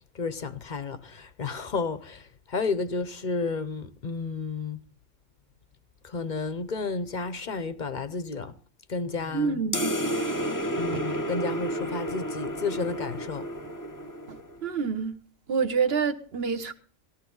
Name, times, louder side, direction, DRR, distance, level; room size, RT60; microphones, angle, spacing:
voice 1, 0.1-4.8 6.0-8.5 8.9-9.6 10.8-13.5, left 4 dB, 45° left, 0.8 m, -32 dB
voice 2, 9.3-9.9 10.9-11.0 14.3-15.2 15.5-16.7, right 5 dB, 50° right, 1.4 m, -28 dB
sound 1, 9.7-14.6, right 1 dB, 15° left, 0.9 m, -31 dB
18.5 x 14.0 x 3.9 m
omnidirectional pair, 1.3 m